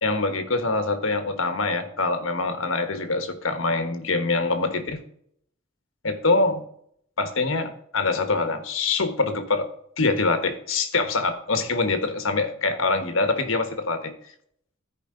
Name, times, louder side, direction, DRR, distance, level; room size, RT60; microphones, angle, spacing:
voice 1, 0.0-5.0 6.0-6.6 7.2-9.7 10.0-14.1, left 3 dB, 75° left, 7 dB, 1.3 m, -24 dB
14.0 x 5.0 x 3.8 m, 0.68 s
head